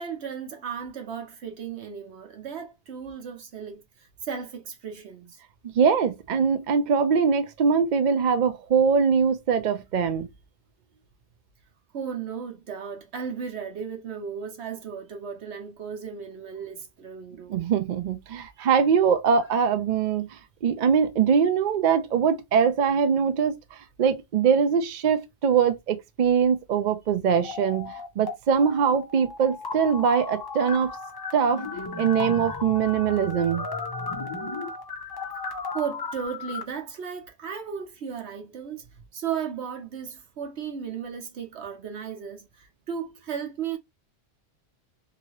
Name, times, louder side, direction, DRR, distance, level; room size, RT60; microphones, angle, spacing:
voice 1, 0.0-5.4 11.9-17.6 35.7-38.8 39.1-43.8, right 7 dB, 75° right, 1.2 m, -35 dB
voice 2, 5.6-10.3 17.5-30.9 31.3-31.6 32.0-33.7, right 6 dB, 55° right, 0.5 m, -22 dB
sound 1, 27.4-28.3 28.6-36.6, left 4 dB, 35° left, 0.4 m, -35 dB
2.9 x 2.7 x 2.9 m
omnidirectional pair, 1.2 m